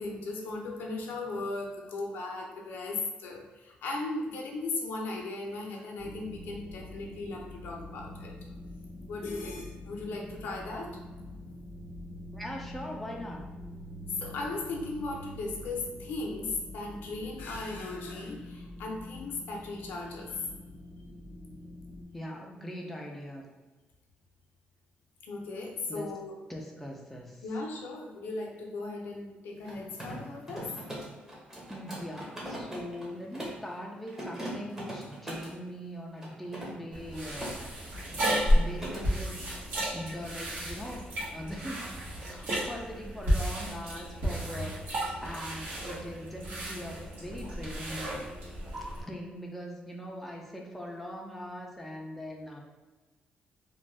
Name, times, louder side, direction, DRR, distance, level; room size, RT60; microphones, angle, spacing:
voice 1, 0.0-8.4 9.1-10.9 14.2-20.4 25.3-26.4 27.4-30.7 32.5-32.6, left 3 dB, 80° left, 0 dB, 0.6 m, -37 dB
sound 1, 6.0-22.0, left 1 dB, 40° right, 1.4 m, -45 dB
voice 2, 12.3-13.4 22.1-23.4 25.9-26.1 26.5-27.4 31.7-37.5 38.5-39.5 39.9-44.8 45.2-48.3 48.8-52.6, equal, 5° left, -1 dB, 0.4 m, -41 dB
Mechanisms, 29.6-33.7 34.1-35.6 36.2-37.6 37.9-38.2 38.5-39.1, equal, 15° right, 0.8 m, -41 dB
sound 2, 36.9-49.0, equal, 70° right, 1.1 m, -32 dB
2.5 x 2.2 x 3.2 m, 1.2 s
cardioid pair, 140°, 3 cm